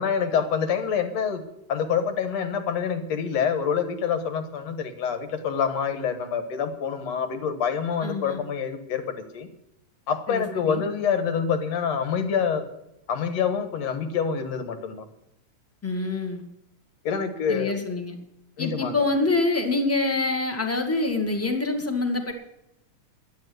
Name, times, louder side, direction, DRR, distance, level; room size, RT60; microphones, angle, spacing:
voice 1, 0.0-1.4 1.7-9.5 10.1-12.6 13.1-15.1 17.0-17.8 18.6-19.1, left 7 dB, 65° left, 8 dB, 2.4 m, -26 dB
voice 2, 8.0-8.4 10.3-10.8 15.8-16.4 17.5-18.2 18.6-22.3, left 3 dB, 5° left, 3 dB, 1.2 m, -26 dB
11.5 x 9.5 x 7.9 m, 0.86 s
omnidirectional pair, 3.4 m